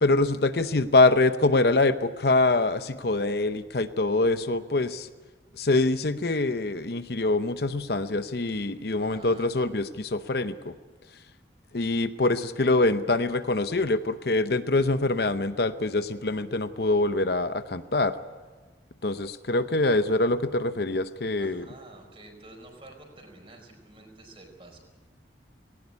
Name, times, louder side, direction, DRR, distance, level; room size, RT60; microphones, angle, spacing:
voice 1, 0.0-5.1 5.6-10.7 11.7-18.1 19.0-21.7, left 2 dB, 60° left, 11 dB, 0.8 m, -24 dB
voice 2, 9.0-9.8 21.3-24.8, right 2 dB, 30° right, 2 dB, 4.7 m, -49 dB
19.0 x 17.5 x 9.6 m, 1.3 s
head